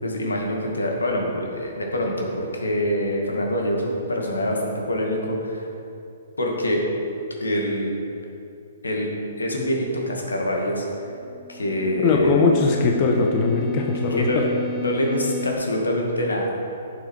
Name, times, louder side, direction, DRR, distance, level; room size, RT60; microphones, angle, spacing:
voice 1, 0.0-5.7 6.4-6.8 7.4-7.9 8.8-9.1 9.4-11.1 11.5-12.4 14.1-14.4 14.8-16.5, left 1 dB, 90° left, 0 dB, 2.0 m, -25 dB
sound 1, 11.1-15.5, left 4 dB, 20° right, 1.3 m, -34 dB
voice 2, 12.0-14.4, left 4 dB, 40° left, 1 dB, 1.2 m, -20 dB
11.0 x 7.2 x 4.8 m, 2.7 s
hypercardioid pair, 130°, 0 cm